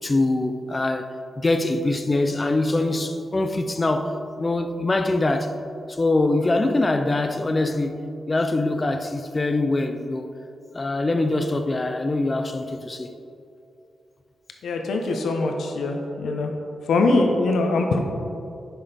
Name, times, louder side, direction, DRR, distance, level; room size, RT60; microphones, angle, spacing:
voice 1, 0.0-5.5 5.9-10.3 10.7-13.1, left 2 dB, 20° left, 0.4 m, -23 dB
voice 2, 14.6-16.5 16.9-18.0, left 3 dB, 80° left, 0.8 m, -22 dB
10.0 x 6.0 x 3.4 m
wide cardioid pair, 175°, 0 cm